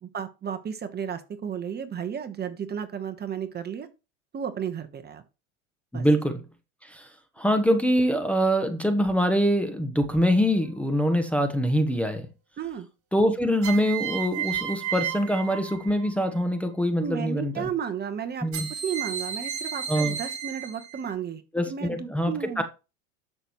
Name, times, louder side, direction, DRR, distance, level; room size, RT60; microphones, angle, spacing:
voice 1, 0.0-3.9 4.3-5.2 5.9-6.1 12.6-12.9 17.0-22.6, right 8 dB, 25° right, 1.3 m, -33 dB
voice 2, 5.9-6.4 6.8-7.1 7.4-12.3 13.1-17.7 18.4-18.7 19.9-20.2 21.5-22.6, equal, 5° left, 1.1 m, -24 dB
sound 1, 10.5-11.1 13.6-16.3 18.5-21.1, right 8 dB, 50° right, 3.4 m, -33 dB
12.0 x 6.2 x 3.1 m
supercardioid pair, 110°, 37 cm